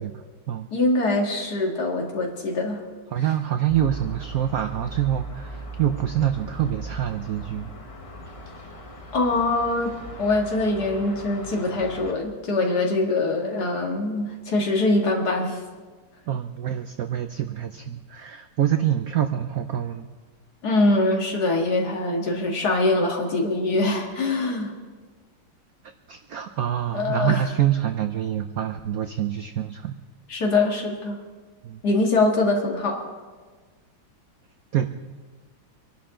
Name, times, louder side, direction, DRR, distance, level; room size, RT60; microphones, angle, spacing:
voice 1, 0.0-0.7 3.1-7.7 16.3-20.1 26.1-29.9 31.6-31.8 34.7-34.9, right 10 dB, 75° right, 8 dB, 0.8 m, -26 dB
voice 2, 0.7-2.8 9.1-15.6 20.6-24.7 26.9-27.4 30.3-31.2 31.8-33.1, left 2 dB, 50° left, 0 dB, 2.4 m, -23 dB
sound 1, 3.7-12.1, right 2 dB, 25° left, 0.9 m, -39 dB
25.5 x 11.5 x 3.8 m, 1.4 s
omnidirectional pair, 2.2 m